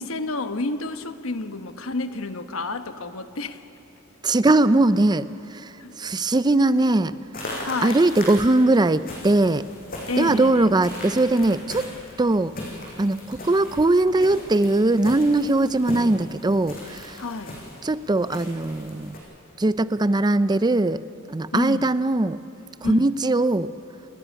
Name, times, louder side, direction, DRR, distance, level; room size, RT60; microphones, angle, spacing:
voice 1, 0.0-3.6 5.8-5.9 7.6-8.0 10.1-10.7 17.2-17.6 21.5-21.9 22.8-23.1, left 2 dB, 75° left, 9 dB, 1.1 m, -30 dB
voice 2, 4.2-7.2 7.8-9.7 10.2-11.9 12.2-12.5 13.0-17.2 17.8-19.2 19.6-21.0 21.3-22.4 22.8-23.7, right 2 dB, 20° right, 15 dB, 0.5 m, -20 dB
sound 1, 7.3-19.2, left 1 dB, 45° left, 5.9 m, -38 dB
29.5 x 13.5 x 10.0 m, 2.8 s
head